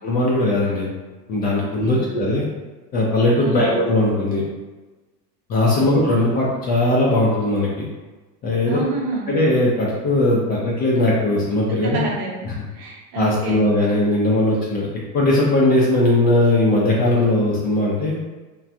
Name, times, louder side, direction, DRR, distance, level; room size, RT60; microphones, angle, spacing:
voice 1, 0.0-0.9 1.3-2.5 2.9-4.4 5.5-7.9 8.4-8.8 9.3-12.0 12.4-12.5 13.1-14.9 15.1-18.2, left 1 dB, 20° left, -5 dB, 0.4 m, -19 dB
voice 2, 1.6-2.0 3.4-3.8 5.7-5.9 6.2-6.4 8.7-9.3 11.8-12.5 12.7-13.6, right 3 dB, 65° right, -2 dB, 0.9 m, -29 dB
3.1 x 2.3 x 2.5 m, 1.2 s
hypercardioid pair, 90°, 48 cm